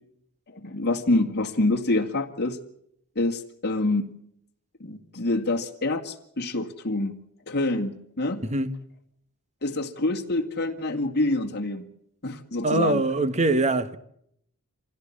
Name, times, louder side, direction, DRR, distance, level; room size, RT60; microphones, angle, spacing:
voice 1, 0.5-2.6 3.2-4.1 4.8-7.2 7.5-8.4 9.6-11.8 12.2-13.0, left 2 dB, 50° left, 2.1 m, -26 dB
voice 2, 12.6-14.0, right 2 dB, 30° right, 1.3 m, -23 dB
25.0 x 16.5 x 8.6 m
head